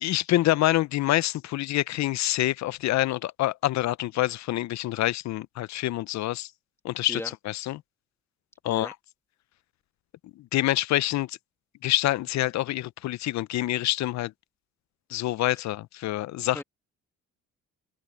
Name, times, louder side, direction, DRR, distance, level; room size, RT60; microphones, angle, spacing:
voice 1, 0.0-6.5 6.8-7.2 7.5-7.8 8.6-8.9 10.4-11.4 11.8-14.3 15.1-16.6, left 15 dB, 65° left, 0.5 m, -26 dB
voice 2, 7.1-7.3 8.7-8.9 16.5-16.6, left 1 dB, 10° left, 1.9 m, -36 dB
open air
cardioid pair, 90°, 30 cm